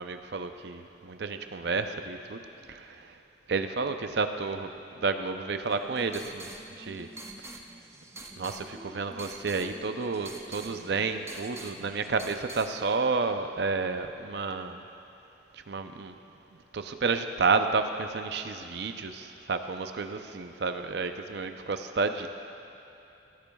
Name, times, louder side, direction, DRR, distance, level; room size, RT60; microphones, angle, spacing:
voice 1, 0.0-2.4 2.7-3.1 3.5-6.5 6.8-7.1 7.4-7.5 8.4-14.8 15.5-16.1 16.7-22.3, right 4 dB, 60° right, 8 dB, 0.5 m, -31 dB
sound 1, 5.6-12.7, right 2 dB, 15° right, 0.5 m, -46 dB
16.0 x 13.5 x 2.3 m, 3.0 s
head